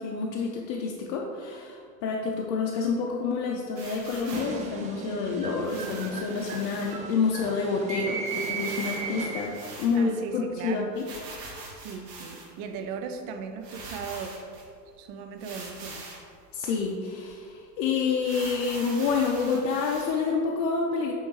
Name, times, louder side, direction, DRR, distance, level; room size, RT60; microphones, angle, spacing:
voice 1, 0.0-11.1 16.5-21.1, left 5 dB, 45° left, -1 dB, 0.7 m, -28 dB
sound 1, 3.7-4.6 5.6-6.9 7.4-7.5 7.7-7.8 8.2-10.2 10.9-12.6 13.2-13.3 13.6-14.7 15.4-16.3 16.8-16.9 17.3-17.4 18.2-20.1, right 2 dB, 70° right, 1.5 m, -43 dB
sound 2, 4.3-9.7, right 4 dB, 15° right, 0.3 m, -35 dB
voice 2, 9.9-10.9 11.7-14.4 15.0-16.0, right 6 dB, 45° right, 7 dB, 0.7 m, -37 dB
8.5 x 3.6 x 3.2 m, 2.3 s
hypercardioid pair, 85°, 50 cm